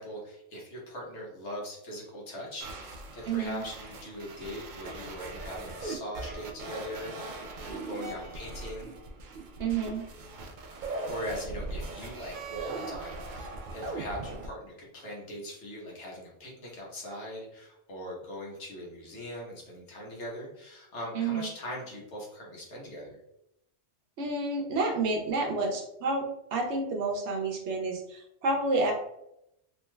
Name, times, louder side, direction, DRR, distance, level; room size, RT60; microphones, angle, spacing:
voice 1, 0.0-8.9 11.0-23.2, equal, 80° left, -3 dB, 1.4 m, -41 dB
sound 1, 2.6-14.5, right 2 dB, 60° right, 0.5 m, -40 dB
voice 2, 3.3-3.6 9.6-10.0 21.1-21.5 24.2-28.9, right 3 dB, 80° right, 2 dB, 0.9 m, -29 dB
3.1 x 3.1 x 2.2 m, 0.80 s
omnidirectional pair, 1.2 m